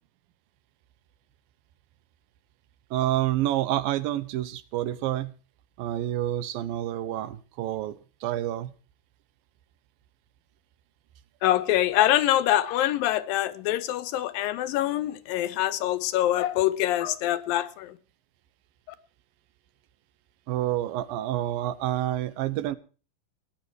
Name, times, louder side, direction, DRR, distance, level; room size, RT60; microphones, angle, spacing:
voice 1, 2.9-5.3 5.8-8.7 20.5-22.8, right 13 dB, 85° right, 2.7 m, -28 dB
voice 2, 11.4-18.0, left 13 dB, 85° left, 2.6 m, -25 dB
19.0 x 10.5 x 4.7 m
omnidirectional pair, 4.0 m